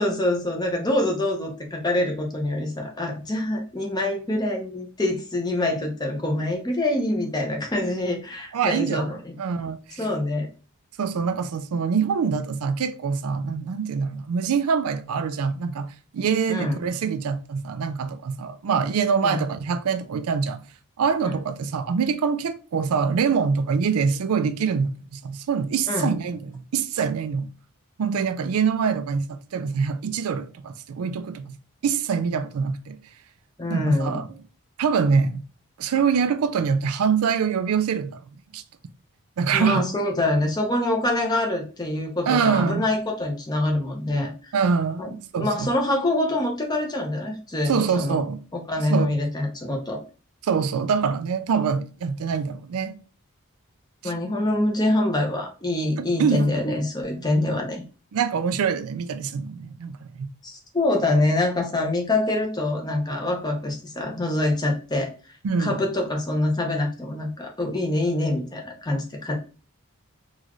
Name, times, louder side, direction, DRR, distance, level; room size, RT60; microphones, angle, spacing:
voice 1, 0.0-9.4 10.0-10.5 16.5-16.8 19.2-19.4 21.2-21.3 25.9-26.1 33.6-34.2 39.5-44.5 45.0-45.1 45.4-48.2 48.5-50.0 54.0-57.8 60.4-65.1 65.6-69.4, left 1 dB, 20° left, 0.7 m, -25 dB
voice 2, 8.5-9.1 9.4-10.1 11.0-20.6 21.0-27.5 28.0-31.6 31.8-33.0 33.7-34.4 34.8-35.4 35.8-38.2 38.5-38.6 39.4-39.9 42.3-42.8 44.5-45.7 47.6-48.4 48.9-49.1 50.4-53.0 54.0-54.1 56.0-56.5 57.2-57.3 58.1-60.3 65.4-65.8, right 6 dB, 85° right, 0.4 m, -24 dB
3.9 x 2.4 x 3.0 m
head